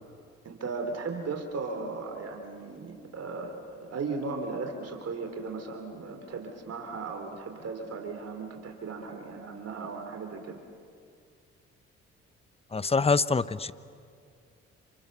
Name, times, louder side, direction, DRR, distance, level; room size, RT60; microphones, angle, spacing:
voice 1, 0.4-10.6, right 4 dB, 55° right, 4 dB, 3.6 m, -36 dB
voice 2, 12.7-13.7, left 4 dB, 20° left, 16 dB, 0.9 m, -25 dB
29.0 x 27.5 x 6.8 m, 2.3 s
supercardioid pair, 60°, 30 cm